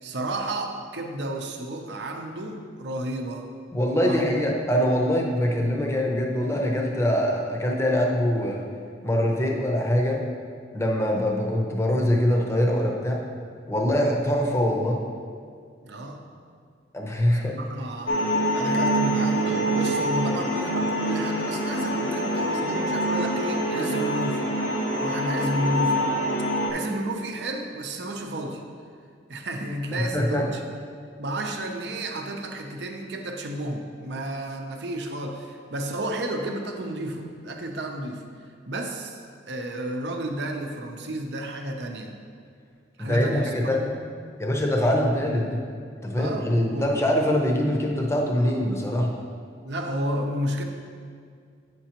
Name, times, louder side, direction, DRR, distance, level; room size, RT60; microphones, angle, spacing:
voice 1, 0.0-3.5 4.0-4.3 11.1-11.3 15.8-16.2 17.5-18.2 18.5-24.4 25.0-26.0 26.7-28.6 29.3-30.8 31.2-38.2 38.7-42.1 43.0-43.8 45.9-46.9 49.6-50.6, right 1 dB, 70° right, 3 dB, 0.7 m, -32 dB
voice 2, 3.7-8.7 9.0-10.2 10.7-13.2 13.7-15.0 16.9-17.6 29.9-30.5 43.0-43.9 44.4-45.6 46.0-49.1, equal, 15° left, 0 dB, 0.7 m, -23 dB
sound 1, 18.1-26.7, equal, 80° left, 1.0 m, -25 dB
8.9 x 6.0 x 2.9 m, 2.2 s
head